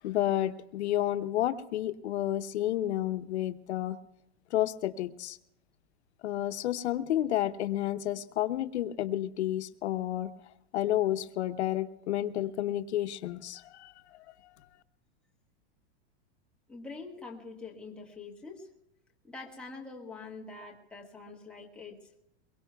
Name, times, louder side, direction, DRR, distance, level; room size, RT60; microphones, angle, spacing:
voice 1, 0.0-4.0 4.5-5.4 6.2-10.3 10.7-14.2, left 13 dB, 85° left, 10 dB, 0.9 m, -31 dB
voice 2, 16.7-18.7 19.2-22.2, left 3 dB, 5° left, -2 dB, 1.5 m, -45 dB
23.0 x 22.5 x 2.3 m, 0.86 s
supercardioid pair, 170°, 33 cm